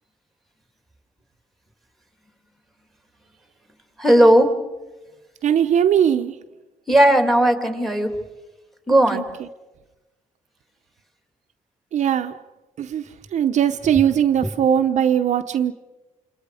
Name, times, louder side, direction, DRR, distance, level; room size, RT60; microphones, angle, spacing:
voice 1, 4.0-4.5 6.9-8.1 8.9-9.2, right 1 dB, ahead, 2.9 m, -15 dB
voice 2, 5.4-6.3 9.1-9.2 11.9-12.4 12.8-13.0 13.3-15.7, right 9 dB, 60° right, 0.8 m, -19 dB
28.5 x 27.0 x 5.0 m
cardioid pair, 140°, 13 cm